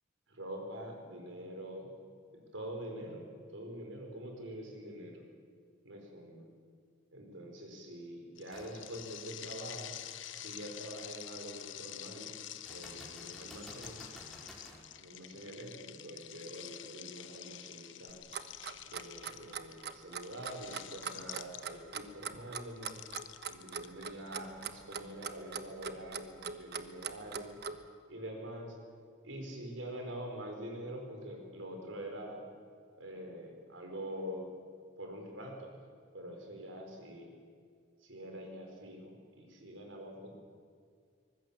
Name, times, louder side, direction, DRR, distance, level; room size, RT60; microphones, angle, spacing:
voice 1, 0.3-2.0 2.5-5.2 5.8-6.5 7.1-9.9 10.3-12.3 12.6-14.0 15.0-18.2 18.9-23.0 23.5-27.5 28.1-28.8 29.2-32.4 33.0-34.5 35.0-35.7 36.1-37.3 38.0-40.3, right 1 dB, 75° right, 2 dB, 5.1 m, -45 dB
sound 1, 8.4-22.0 22.8-24.6, left 12 dB, 65° left, 1.0 m, -48 dB
sound 2, 8.5-8.8 9.4-9.5 12.7-14.9 18.5-18.6, equal, ahead, 4.4 m, -52 dB
Clock, 18.1-27.8, right 6 dB, 55° right, 1.2 m, -41 dB
24.0 x 20.5 x 7.3 m, 2.1 s
head